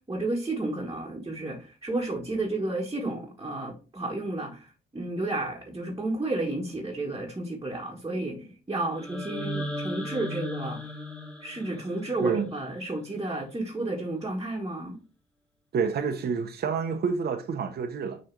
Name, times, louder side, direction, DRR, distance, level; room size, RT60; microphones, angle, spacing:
voice 1, 0.1-10.8 11.4-15.0, right 2 dB, 20° right, 1.4 m, -32 dB
sound 1, 8.9-13.0, equal, 5° left, 1.8 m, -37 dB
voice 2, 12.2-12.5 15.7-18.2, right 5 dB, 55° right, 0.9 m, -28 dB
6.4 x 3.2 x 4.6 m
cardioid pair, 90°, 20 cm